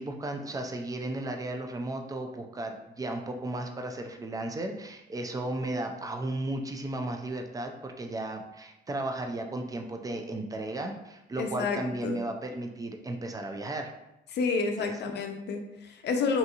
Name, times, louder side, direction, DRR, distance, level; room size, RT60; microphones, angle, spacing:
voice 1, 0.0-13.9 14.8-14.9, right 2 dB, 20° right, 4 dB, 0.3 m, -35 dB
voice 2, 11.4-12.2 14.3-16.4, left 4 dB, 60° left, 4 dB, 0.5 m, -30 dB
2.7 x 2.6 x 2.4 m, 0.92 s
cardioid pair, 90°, 20 cm